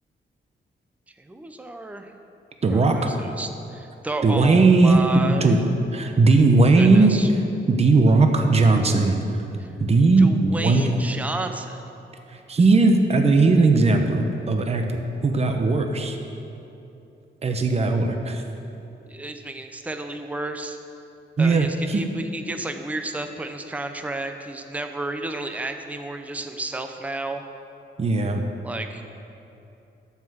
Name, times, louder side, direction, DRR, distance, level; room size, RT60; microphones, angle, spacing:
voice 1, 1.2-2.1 2.7-5.6 6.7-7.3 9.6-9.7 10.2-11.9 19.1-20.8 21.4-27.4 28.6-29.1, right 2 dB, 5° right, 6 dB, 0.6 m, -32 dB
voice 2, 2.6-3.2 4.2-5.6 5.9-7.2 7.7-9.1 9.8-10.9 12.3-16.2 17.4-18.4 21.4-22.0 28.0-28.4, right 3 dB, 30° right, 4 dB, 0.9 m, -18 dB
12.5 x 5.8 x 7.8 m, 2.8 s
wide cardioid pair, 130°, 20 cm